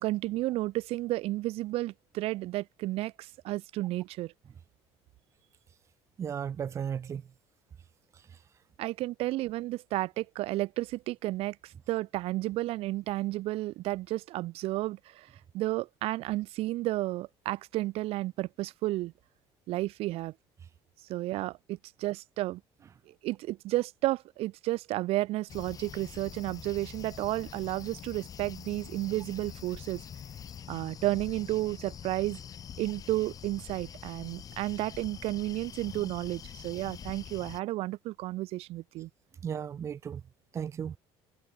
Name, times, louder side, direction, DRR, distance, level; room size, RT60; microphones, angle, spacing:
voice 1, 0.0-4.3 8.8-15.3 15.5-19.1 19.7-20.3 21.1-22.6 23.2-30.0 30.7-32.4 32.8-39.1, right 17 dB, 60° right, 1.2 m, -32 dB
voice 2, 6.2-7.3 39.4-40.2 40.5-41.0, right 8 dB, 25° right, 0.5 m, -35 dB
sound 1, 25.5-37.6, left 8 dB, 35° left, 3.1 m, -45 dB
cardioid pair, 160°, 11 cm